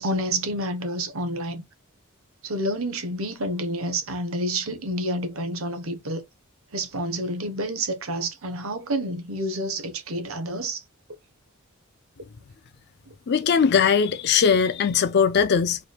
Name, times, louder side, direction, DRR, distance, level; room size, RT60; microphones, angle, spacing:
voice 1, 0.0-1.6 2.4-6.2 6.7-10.8, right 1 dB, 70° right, 1.0 m, -29 dB
voice 2, 13.3-15.8, left 6 dB, 50° left, 0.4 m, -20 dB
4.5 x 3.2 x 2.3 m
head